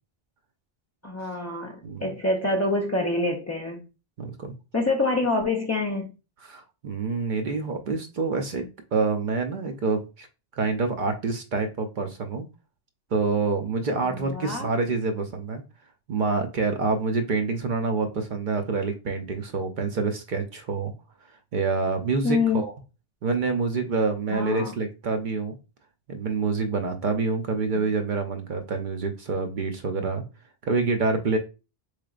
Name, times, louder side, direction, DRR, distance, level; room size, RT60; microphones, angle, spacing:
voice 1, 1.0-3.8 4.7-6.1 14.1-14.7 22.2-22.6 24.3-24.7 27.8-27.9, left 2 dB, 30° left, -1 dB, 0.3 m, -26 dB
voice 2, 4.2-4.5 6.4-10.3 10.6-12.5 13.1-15.6 16.1-20.9 21.5-22.7 23.2-25.6 26.1-30.2 30.6-31.4, right 4 dB, 55° right, 6 dB, 0.6 m, -27 dB
3.9 x 3.3 x 2.4 m, 0.30 s
omnidirectional pair, 1.1 m